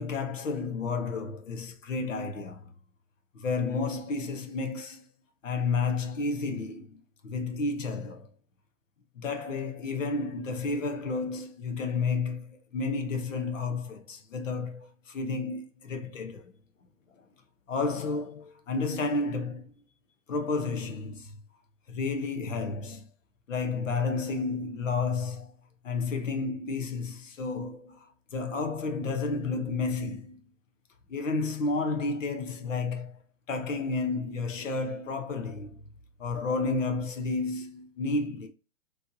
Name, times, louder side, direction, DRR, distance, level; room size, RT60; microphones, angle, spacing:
voice 1, 0.0-2.7 3.3-5.0 5.4-8.3 9.1-16.5 17.7-19.8 20.3-21.4 21.9-23.1 23.5-25.5 25.8-30.4 31.1-33.2 33.5-35.8 36.2-38.5, left 4 dB, 85° left, 1.1 m, -31 dB
4.4 x 3.2 x 2.7 m
hypercardioid pair, 140°, 37 cm